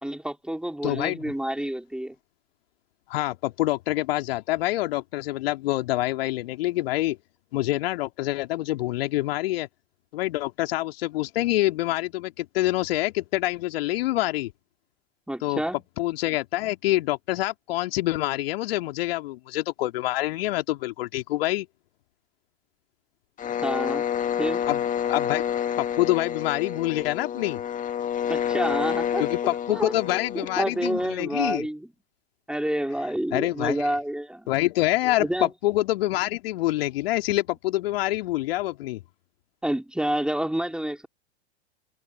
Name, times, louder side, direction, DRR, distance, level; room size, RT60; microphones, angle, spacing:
voice 1, 0.0-2.2 15.3-15.8 23.6-24.1 24.4-24.7 28.3-29.2 29.7-29.9 30.3-31.9 32.5-34.5 35.2-35.5 39.6-41.1, right 1 dB, ahead, 3.8 m, -28 dB
voice 2, 0.8-1.3 3.1-7.2 7.5-9.7 10.1-14.5 15.4-15.6 16.0-21.7 24.7-24.8 25.1-25.4 25.8-27.6 29.2-31.7 33.3-33.9 34.5-39.0, left 17 dB, 55° left, 2.7 m, -26 dB
sound 1, 23.4-31.1, left 9 dB, 25° left, 2.1 m, -29 dB
figure-of-eight pair, 95°, 34 cm